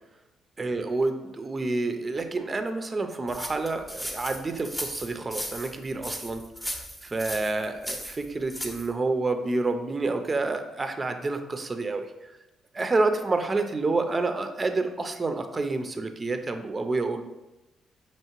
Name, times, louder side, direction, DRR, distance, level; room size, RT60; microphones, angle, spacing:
voice 1, 0.6-6.4 7.0-12.1 12.7-17.2, right 3 dB, 25° right, 7 dB, 0.4 m, -28 dB
sound 1, 3.3-8.9, equal, 5° left, 0.7 m, -36 dB
5.5 x 3.0 x 3.0 m, 0.99 s
cardioid pair, 90°, 0 cm